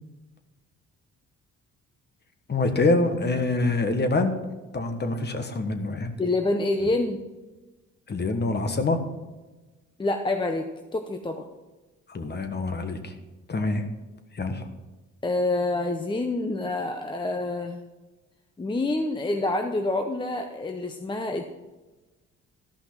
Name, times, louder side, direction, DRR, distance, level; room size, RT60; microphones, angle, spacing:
voice 1, 2.5-4.3 4.7-6.1 6.8-6.9 8.1-9.0 12.1-13.1 13.5-13.8 14.3-14.6, left 2 dB, 35° left, 7 dB, 1.4 m, -25 dB
voice 2, 6.2-7.2 10.0-11.5 15.2-17.8 18.6-21.4, left 2 dB, 15° left, 5 dB, 0.7 m, -27 dB
13.0 x 5.6 x 6.0 m, 1.2 s
cardioid pair, 90°, 30 cm